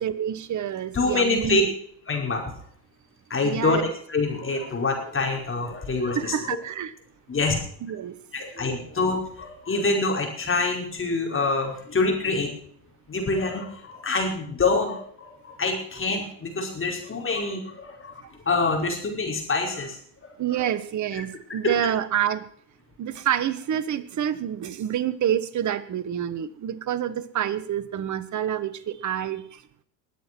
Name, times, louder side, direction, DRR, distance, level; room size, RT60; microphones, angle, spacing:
voice 1, 0.0-1.7 3.4-3.9 6.1-6.9 7.8-8.2 20.4-22.4 23.0-29.6, right 10 dB, 35° right, 15 dB, 1.3 m, -28 dB
voice 2, 0.9-1.6 2.1-2.5 3.3-3.8 4.1-6.3 7.3-7.6 8.3-12.5 13.1-20.6 21.6-21.8, left 3 dB, 25° left, 1 dB, 5.1 m, -26 dB
21.0 x 8.0 x 6.1 m, 0.63 s
hypercardioid pair, 80°, 49 cm